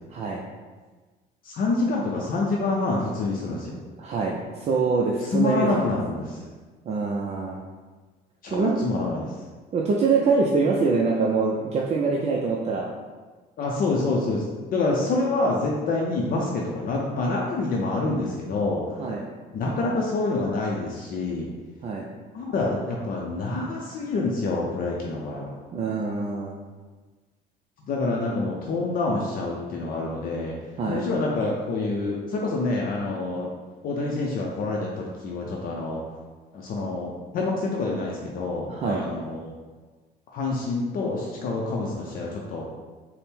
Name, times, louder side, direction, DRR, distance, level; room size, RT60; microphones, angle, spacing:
voice 1, 0.1-0.4 4.0-5.9 6.9-7.6 8.5-8.8 9.7-12.9 19.0-19.2 21.8-22.1 25.7-26.6 30.8-31.1 38.7-39.1, right 4 dB, 40° right, -2 dB, 0.4 m, -24 dB
voice 2, 1.4-3.8 5.3-6.4 8.4-9.3 13.6-14.4 14.7-18.8 19.5-21.5 22.3-25.6 27.9-30.5 30.9-33.5 33.8-36.0 36.5-39.5 40.3-42.7, left 3 dB, 55° left, -2 dB, 0.5 m, -27 dB
4.2 x 2.1 x 3.5 m, 1.3 s
cardioid pair, 110°, 17 cm